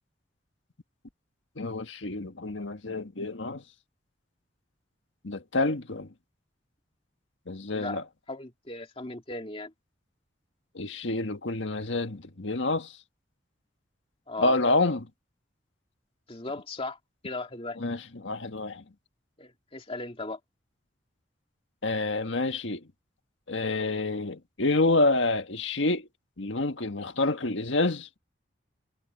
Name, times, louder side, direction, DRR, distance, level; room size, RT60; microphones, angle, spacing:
voice 1, 1.6-3.6 5.2-6.1 7.5-8.0 10.7-13.0 14.4-15.1 17.8-18.8 21.8-22.9 23.5-26.1 26.4-28.2, left 2 dB, 85° left, 1.6 m, -28 dB
voice 2, 8.3-9.7 14.3-14.5 16.3-17.0 17.2-17.8 19.4-20.4, left 2 dB, 30° left, 2.5 m, -37 dB
head